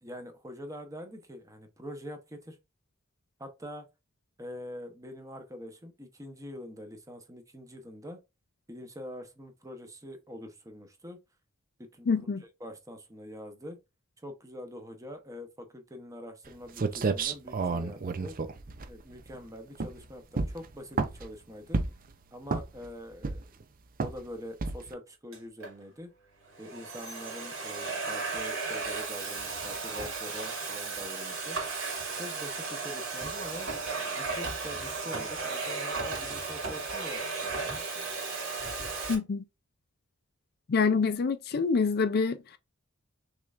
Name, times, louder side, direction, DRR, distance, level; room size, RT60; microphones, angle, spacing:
voice 1, 0.0-2.6 3.4-3.9 4.4-8.2 8.7-11.2 11.8-12.3 12.6-13.8 14.2-18.4 18.9-21.8 22.3-23.6 24.0-26.1 26.6-31.6 32.2-33.7 34.2-38.1, equal, 15° right, 0.9 m, -44 dB
voice 2, 12.1-12.4 39.1-39.4 40.7-42.6, left 5 dB, 50° left, 0.4 m, -26 dB
sound 1, 16.5-16.6 16.8-19.4 19.7-20.0 20.3-21.3 21.7-22.1 22.5-22.9 23.2-23.6 24.0-24.2 24.6-24.9, right 4 dB, 45° right, 0.5 m, -30 dB
Domestic sounds home sounds, 25.3-25.7 26.4-39.1, right 4 dB, 70° right, 2.5 m, -35 dB
5.9 x 3.3 x 2.5 m
head